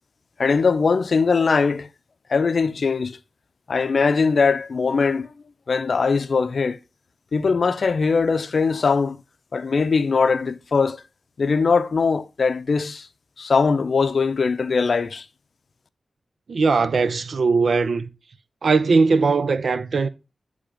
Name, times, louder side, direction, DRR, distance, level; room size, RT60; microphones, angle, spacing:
voice 1, 0.4-1.9 2.3-3.2 3.7-5.3 5.7-6.8 7.3-9.2 9.5-11.0 11.4-13.1 13.4-15.3, left 4 dB, 70° left, 0.5 m, -21 dB
voice 2, 16.5-18.1 18.6-20.1, right 4 dB, 70° right, 0.6 m, -19 dB
9.9 x 3.4 x 4.9 m
wide cardioid pair, 85°, 0 cm